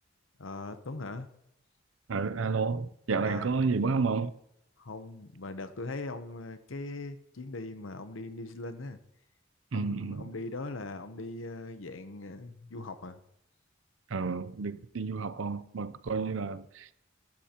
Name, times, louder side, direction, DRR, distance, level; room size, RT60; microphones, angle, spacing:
voice 1, 0.4-1.3 3.2-3.5 4.8-9.0 9.7-13.2, left 2 dB, 85° left, 0.9 m, -40 dB
voice 2, 2.1-4.3 9.7-10.3 14.1-16.9, right 4 dB, 85° right, 0.6 m, -31 dB
12.5 x 12.0 x 3.0 m
head